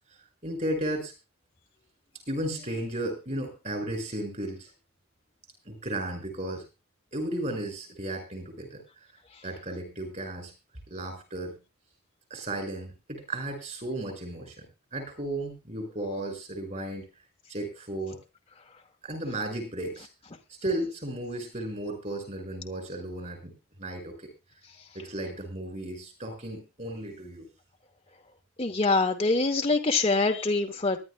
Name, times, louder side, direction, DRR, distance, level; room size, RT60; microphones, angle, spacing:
voice 1, 0.4-1.1 2.3-4.7 5.7-6.6 7.1-8.8 9.4-10.5 10.9-11.6 12.3-17.1 17.5-18.2 19.0-20.1 20.6-23.5 23.8-24.3 24.9-27.5, right 1 dB, 35° right, 5 dB, 5.6 m, -34 dB
voice 2, 28.6-31.0, left 3 dB, 25° left, 2 dB, 1.0 m, -24 dB
24.0 x 11.0 x 2.3 m, 0.29 s
head